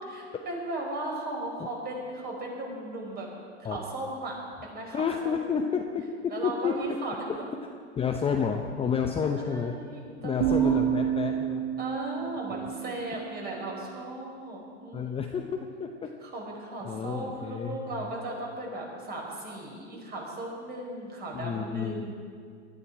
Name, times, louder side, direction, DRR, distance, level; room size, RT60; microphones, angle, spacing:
voice 1, 0.0-3.3 3.6-4.4 4.7-5.6 6.3-7.3 9.3-10.9 11.8-15.2 16.2-22.1, right 2 dB, 25° right, -1 dB, 5.3 m, -37 dB
voice 2, 4.9-6.8 8.0-9.7 10.2-11.7 12.5-12.7 14.9-16.1 16.8-18.1 21.3-22.1, left 6 dB, 15° left, 4 dB, 0.8 m, -30 dB
sound 1, 10.4-14.3, right 11 dB, 45° right, 1.3 m, -30 dB
22.5 x 12.5 x 4.9 m, 2.2 s
hypercardioid pair, 105°, 36 cm